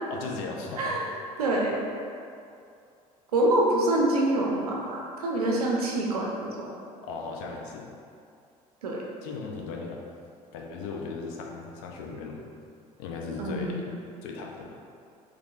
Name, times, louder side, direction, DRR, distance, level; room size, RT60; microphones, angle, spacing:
voice 1, 0.1-1.0 7.0-7.9 9.2-10.0 10.5-12.4 13.0-13.9 14.2-14.8, left 4 dB, 65° left, 0 dB, 0.5 m, -37 dB
voice 2, 1.4-1.8 3.3-6.7 8.8-9.0 13.4-13.9, right 1 dB, 80° right, -2 dB, 0.4 m, -26 dB
3.5 x 3.0 x 2.4 m, 2.4 s
figure-of-eight pair, 60°, 19 cm